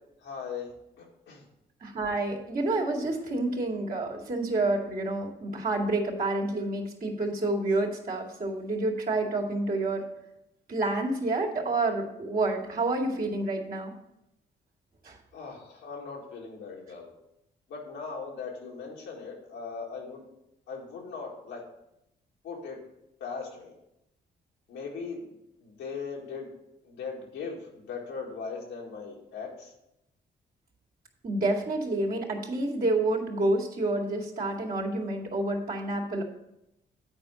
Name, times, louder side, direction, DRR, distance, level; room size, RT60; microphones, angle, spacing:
voice 1, 0.2-0.7 1.0-1.4 15.3-17.1 17.7-20.2 20.7-21.6 22.4-22.8 23.2-23.7 24.7-25.2 25.6-26.5 26.8-29.7, left 5 dB, 85° left, -2 dB, 2.0 m, -39 dB
voice 2, 1.8-10.1 10.7-13.9 15.0-15.2 31.2-36.2, right 2 dB, 50° right, -3 dB, 2.2 m, -29 dB
8.9 x 4.5 x 6.2 m, 0.85 s
supercardioid pair, 55°, 19 cm